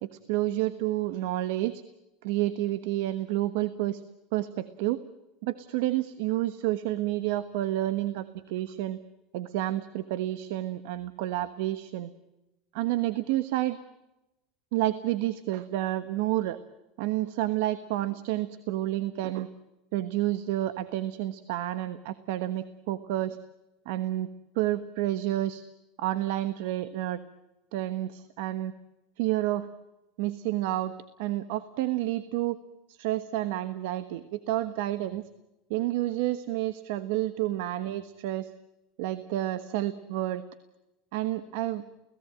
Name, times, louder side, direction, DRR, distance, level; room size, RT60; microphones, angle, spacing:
voice 1, 0.0-1.8 2.2-4.0 4.3-5.0 5.4-8.2 8.5-9.0 9.3-12.1 12.7-13.8 14.7-16.6 17.0-19.5 19.9-23.4 23.8-24.3 24.5-25.6 26.0-27.2 27.7-28.7 29.2-29.7 30.2-30.9 31.2-32.6 32.9-35.2 35.7-38.5 39.0-40.4 41.1-41.8, right 14 dB, 65° right, 13 dB, 1.3 m, -29 dB
29.5 x 18.0 x 9.0 m, 0.96 s
supercardioid pair, 170°, 0 cm